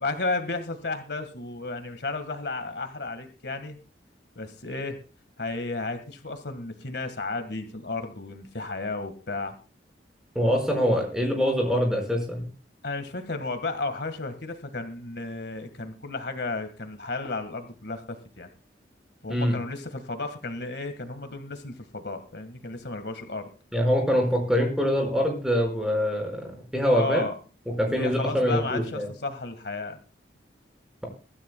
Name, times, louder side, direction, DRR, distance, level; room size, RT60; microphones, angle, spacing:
voice 1, 0.0-3.8 4.4-5.0 5.4-9.5 12.8-18.5 19.2-23.5 26.9-27.3 27.8-30.0, left 3 dB, 70° left, 8 dB, 1.7 m, -33 dB
voice 2, 10.4-12.5 19.3-19.6 23.7-27.2 27.8-29.1, equal, 5° right, 1 dB, 5.2 m, -24 dB
23.5 x 13.0 x 2.3 m, 0.34 s
head